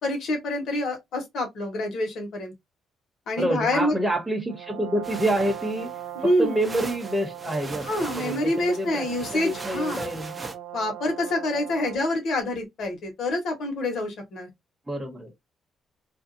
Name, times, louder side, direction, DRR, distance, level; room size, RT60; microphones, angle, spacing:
voice 1, 0.0-2.5 3.3-4.0 6.1-6.6 7.8-10.1 10.7-14.5, left 1 dB, 70° left, 1.1 m, -27 dB
voice 2, 3.4-5.9 6.2-7.9 8.1-9.1 9.3-10.4 14.9-15.3, right 1 dB, 5° right, 0.8 m, -27 dB
Brass instrument, 4.5-12.2, right 11 dB, 80° right, 0.4 m, -39 dB
sound 1, 5.0-10.5, right 3 dB, 25° right, 0.5 m, -40 dB
2.6 x 2.2 x 2.6 m
cardioid pair, 90°, 0 cm